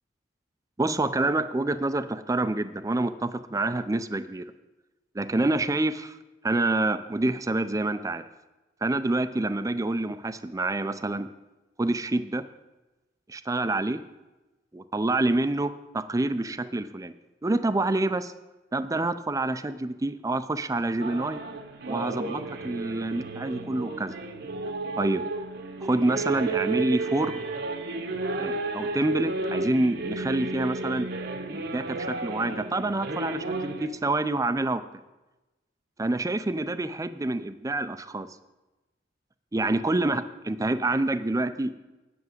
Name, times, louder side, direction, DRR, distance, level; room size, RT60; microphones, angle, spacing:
voice 1, 0.8-4.4 5.1-6.2 6.4-8.2 8.8-11.3 11.8-12.5 13.3-14.0 14.7-17.1 17.4-18.3 18.7-21.4 21.9-24.1 25.0-25.2 25.8-27.4 28.4-31.1 31.5-34.8 36.0-38.3 39.5-41.8, right 2 dB, 15° right, 12 dB, 0.5 m, -27 dB
sound 1, 21.0-33.9, right 3 dB, 60° right, 1.0 m, -33 dB
9.6 x 6.2 x 7.9 m, 1.0 s
head